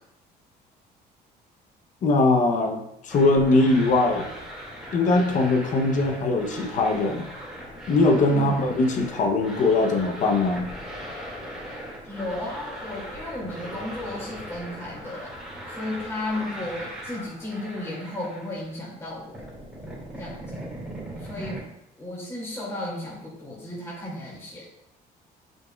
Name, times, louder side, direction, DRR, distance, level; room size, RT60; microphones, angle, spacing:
voice 1, 2.0-4.3 4.9-7.3 7.9-10.7, left 2 dB, 50° left, 2 dB, 0.8 m, -21 dB
sound 1, 3.1-18.8 19.1-21.6, equal, 5° right, 2.2 m, -39 dB
voice 2, 12.0-15.3 15.7-19.4 20.2-20.6 21.2-21.7 22.0-24.7, left 1 dB, 15° left, -7 dB, 2.4 m, -34 dB
7.7 x 5.4 x 2.4 m, 0.82 s
cardioid pair, 110°, 17 cm